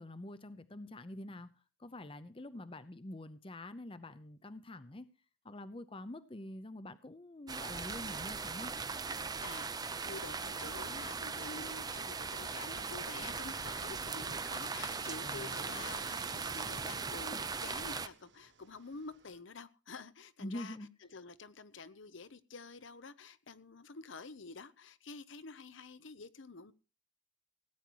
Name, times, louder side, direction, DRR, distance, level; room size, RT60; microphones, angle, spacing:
voice 1, 0.0-1.5 1.8-5.1 5.4-8.7 15.2-15.6 20.4-20.9, left 1 dB, 25° left, 0.7 m, -46 dB
sound 1, 7.5-18.1, right 5 dB, 20° right, 0.6 m, -39 dB
voice 2, 9.4-20.8 21.1-26.7, left 4 dB, 65° left, 0.9 m, -49 dB
Fixed-wing aircraft airplane, 10.1-19.4, right 5 dB, 60° right, 1.3 m, -56 dB
17.0 x 9.8 x 4.7 m
head